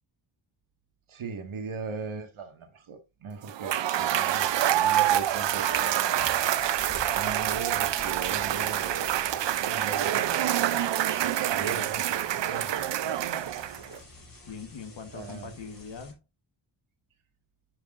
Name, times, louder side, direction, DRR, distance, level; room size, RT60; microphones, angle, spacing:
voice 1, 1.1-6.3 7.1-9.4 9.6-10.8 11.2-14.0 15.1-15.5, right 5 dB, 85° right, 1.8 m, -39 dB
Cheering / Applause / Crowd, 3.5-13.9, right 11 dB, 65° right, 0.5 m, -27 dB
sound 1, 4.3-16.1, left 2 dB, 45° left, 3.1 m, -50 dB
sound 2, 5.5-10.3, right 5 dB, 35° right, 0.8 m, -48 dB
voice 2, 11.4-12.1 14.5-16.2, left 5 dB, 65° left, 1.3 m, -43 dB
9.7 x 6.1 x 2.5 m
wide cardioid pair, 115°, 48 cm